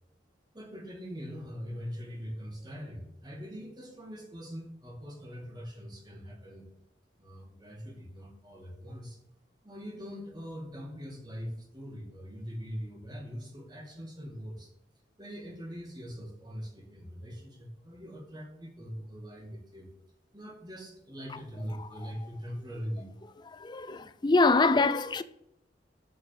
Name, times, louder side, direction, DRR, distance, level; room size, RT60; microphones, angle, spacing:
voice 1, 0.5-6.7 7.2-9.2 9.6-14.7 15.2-19.9 20.3-23.1, equal, 25° right, 2.0 m, -42 dB
voice 2, 23.5-25.2, left 3 dB, 25° left, 0.4 m, -24 dB
7.1 x 6.2 x 7.5 m
head